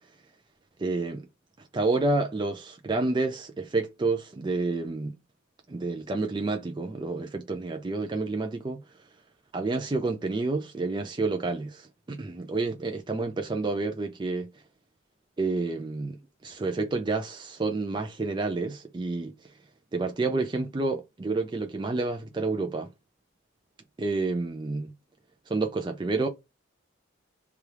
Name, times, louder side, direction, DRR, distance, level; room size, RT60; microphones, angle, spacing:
voice 1, 0.8-1.3 1.7-5.2 5.7-8.8 9.5-14.5 15.4-16.2 16.4-19.5 19.9-22.9 24.0-24.9 25.5-26.3, right 3 dB, 25° right, 0.3 m, -29 dB
3.2 x 2.3 x 2.8 m
head